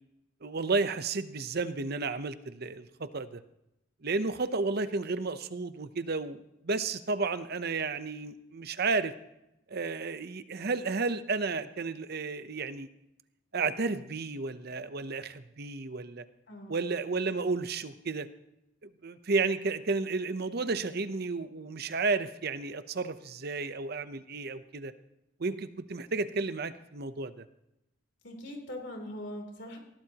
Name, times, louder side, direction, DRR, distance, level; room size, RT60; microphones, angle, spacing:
voice 1, 0.4-3.4 4.0-9.1 9.7-12.9 13.5-16.2 16.7-18.3 18.8-24.9 25.4-27.5, right 3 dB, 55° right, 11 dB, 0.8 m, -32 dB
voice 2, 16.5-16.8 28.2-29.8, left 1 dB, 60° left, 2 dB, 3.4 m, -41 dB
19.5 x 17.5 x 3.0 m, 0.86 s
head